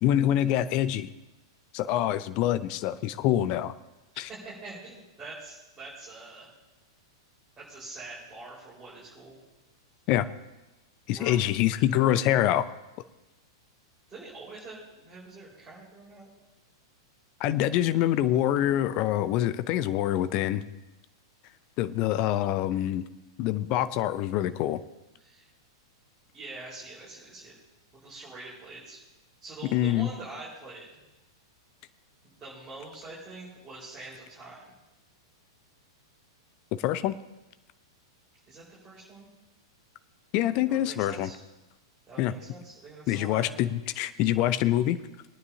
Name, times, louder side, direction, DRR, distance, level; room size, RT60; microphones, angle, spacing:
voice 1, 0.0-1.1 1.7-3.7 4.2-4.3 10.1-10.3 11.1-12.6 17.4-20.6 21.8-23.0 23.4-24.8 29.7-30.1 36.8-37.2 40.3-41.3 42.2-42.3 43.1-45.0, left 12 dB, 35° left, 13 dB, 0.6 m, -25 dB
voice 2, 4.1-6.5 7.6-9.4 11.1-11.4 12.0-12.2 14.1-16.3 25.2-25.5 26.3-27.5 28.0-29.0 29.4-30.9 32.2-34.7 38.5-39.3 40.7-41.4 42.1-43.5, right 3 dB, 15° right, -9 dB, 4.7 m, -44 dB
22.5 x 9.5 x 2.8 m, 1.0 s
figure-of-eight pair, 100°, 2 cm